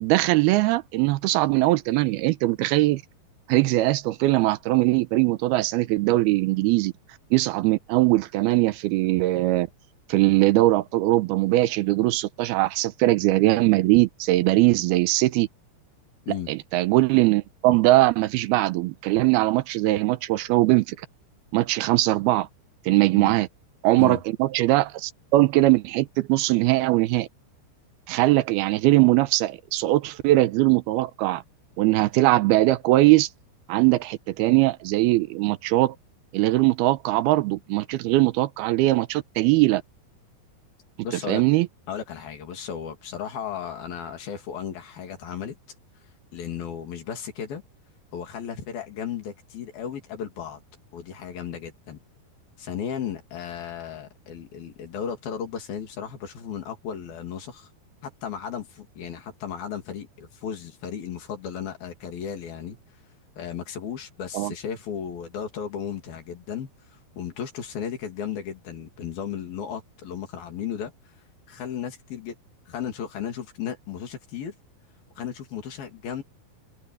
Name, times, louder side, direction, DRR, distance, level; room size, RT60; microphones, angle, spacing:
voice 1, 0.0-3.0 3.5-6.9 7.3-9.7 10.1-15.5 16.5-21.0 21.5-22.5 22.9-23.5 23.8-27.3 28.1-31.4 31.8-33.3 33.7-36.0 36.3-39.8 41.3-41.7 64.3-64.5, right 18 dB, 90° right, 2.7 m, -21 dB
voice 2, 41.0-41.4 41.9-45.6 46.3-47.6 48.1-50.6 50.9-52.0 52.6-57.7 58.0-62.8 63.4-66.7 67.2-70.9 71.5-72.4 72.7-74.5 75.2-76.2, left 8 dB, 70° left, 4.6 m, -35 dB
omnidirectional pair, 4.5 m